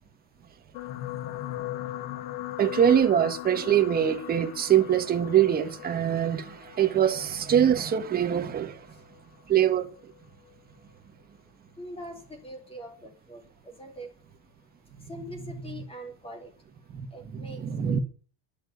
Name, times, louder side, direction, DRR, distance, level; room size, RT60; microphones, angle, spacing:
sound 1, 0.7-9.2 10.0-10.2 10.5-10.6, left 14 dB, 85° left, 1.3 m, -38 dB
voice 1, 2.6-8.8 9.5-9.9 16.9-17.1 17.3-18.0, right 10 dB, 25° right, 1.4 m, -23 dB
voice 2, 11.8-14.1 15.1-16.5 17.1-18.0, equal, 15° left, 2.7 m, -42 dB
11.0 x 7.1 x 9.3 m
cardioid pair, 150°, 38 cm